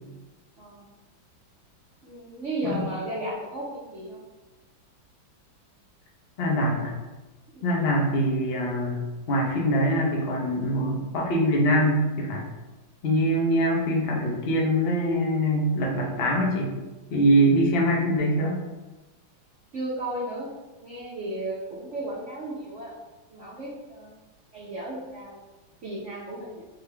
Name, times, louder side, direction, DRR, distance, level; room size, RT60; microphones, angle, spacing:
voice 1, 2.0-4.2 7.5-7.6 19.7-20.5 20.8-22.9 23.3-24.1 24.5-25.4 25.8-26.6, right 1 dB, 60° right, -7 dB, 0.7 m, -34 dB
voice 2, 6.4-7.0 7.6-12.5 13.0-16.8 17.1-18.6, equal, 65° left, -2 dB, 0.6 m, -23 dB
3.9 x 3.4 x 3.3 m, 1.1 s
omnidirectional pair, 2.2 m